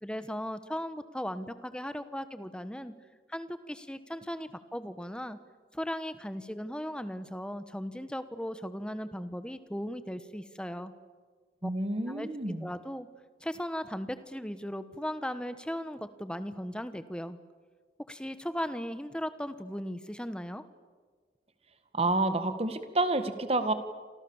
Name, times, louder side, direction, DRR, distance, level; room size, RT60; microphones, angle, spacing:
voice 1, 0.0-2.9 3.3-5.4 5.7-10.9 11.6-11.7 12.0-12.3 12.6-13.1 13.4-17.4 18.1-20.6, equal, 5° left, 11 dB, 1.2 m, -37 dB
voice 2, 11.6-12.7 21.9-23.7, right 2 dB, 35° right, 9 dB, 1.8 m, -29 dB
29.0 x 27.0 x 7.3 m, 1.5 s
head